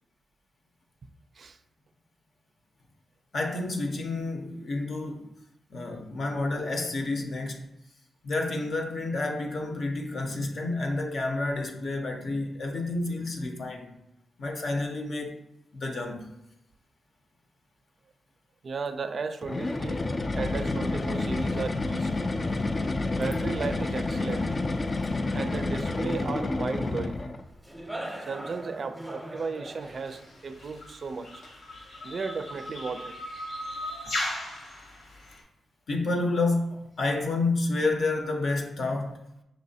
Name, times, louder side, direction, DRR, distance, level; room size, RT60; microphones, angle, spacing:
voice 1, 3.3-5.3 5.7-7.7 8.2-13.9 14.4-15.4 15.7-16.3 35.9-39.2, left 2 dB, 60° left, 0.7 m, -29 dB
voice 2, 18.6-20.1 20.3-22.1 23.1-24.5 25.3-27.2 28.3-31.4 32.0-33.2 34.1-34.2, right 4 dB, 55° right, 0.4 m, -34 dB
sound 1, 19.4-27.5, left 2 dB, 35° left, 0.3 m, -29 dB
sound 2, 24.3-30.7, right 1 dB, 5° right, 0.7 m, -43 dB
sound 3, 29.8-35.4, left 1 dB, 75° left, 1.0 m, -37 dB
5.3 x 3.1 x 2.7 m
cardioid pair, 80°, 0 cm